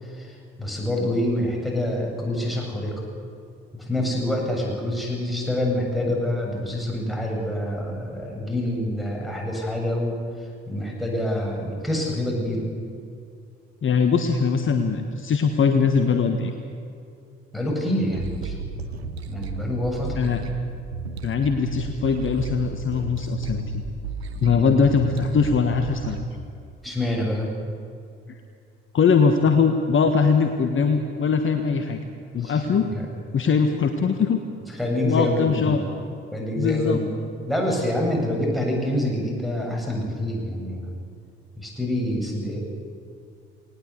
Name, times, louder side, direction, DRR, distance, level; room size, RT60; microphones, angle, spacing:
voice 1, 0.1-3.1 3.7-10.2 10.7-12.7 17.5-18.8 19.3-20.4 24.4-24.7 26.8-27.5 32.4-33.0 34.8-35.8 36.3-37.1 37.5-41.0 41.6-42.6, left 1 dB, ahead, -2 dB, 7.5 m, -26 dB
voice 2, 13.8-16.5 20.1-20.4 21.2-23.8 24.4-26.3 28.9-32.0 32.3-32.9 33.3-34.4 35.0-35.8 36.5-37.0, left 5 dB, 40° left, 7 dB, 1.5 m, -21 dB
sound 1, 18.1-26.2, right 4 dB, 85° right, 1.0 m, -34 dB
19.0 x 19.0 x 8.3 m, 2.4 s
figure-of-eight pair, 50°, 31 cm